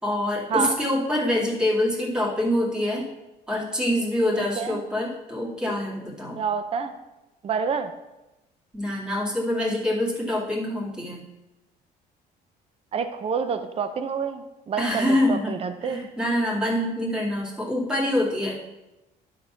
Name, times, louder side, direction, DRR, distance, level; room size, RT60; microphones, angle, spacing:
voice 1, 0.0-3.1 3.5-6.4 8.7-11.2 14.8-18.6, left 1 dB, 5° right, -5 dB, 2.4 m, -25 dB
voice 2, 4.3-4.8 6.4-6.9 7.4-7.9 12.9-16.0, right 6 dB, 35° right, 9 dB, 0.7 m, -28 dB
11.0 x 4.1 x 5.9 m, 1.0 s
cardioid pair, 110°, 17 cm